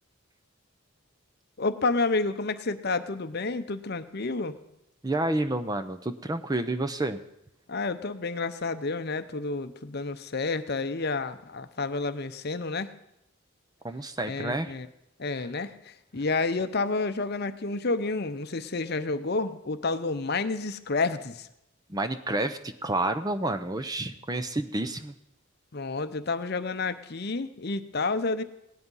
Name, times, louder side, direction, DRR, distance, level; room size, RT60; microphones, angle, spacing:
voice 1, 1.6-4.6 7.7-12.9 14.3-14.9 15.2-21.5 25.7-28.4, left 3 dB, 50° left, 11 dB, 0.7 m, -30 dB
voice 2, 5.0-7.2 13.8-14.7 21.9-25.1, right 2 dB, 20° right, 10 dB, 0.6 m, -29 dB
17.0 x 10.5 x 5.5 m, 0.84 s
head